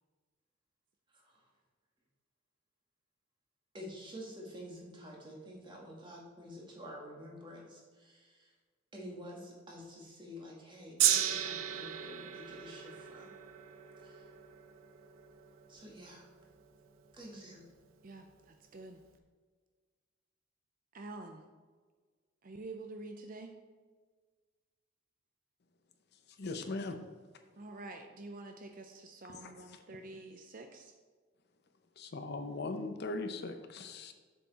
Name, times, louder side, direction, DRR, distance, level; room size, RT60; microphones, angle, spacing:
voice 1, 3.7-8.4 8.9-13.3 14.0-14.2 15.7-16.3 17.1-17.7, equal, 25° right, -2 dB, 1.9 m, -49 dB
Gong, 11.0-17.4 18.1-18.2, right 10 dB, 85° right, 0.7 m, -35 dB
voice 2, 18.0-19.0 20.9-21.4 22.4-23.5 27.6-30.9, right 2 dB, 45° right, 5 dB, 0.5 m, -47 dB
voice 3, 26.4-27.0 32.0-34.1, left 3 dB, 55° left, 7 dB, 0.7 m, -39 dB
7.3 x 6.9 x 4.1 m, 1.5 s
head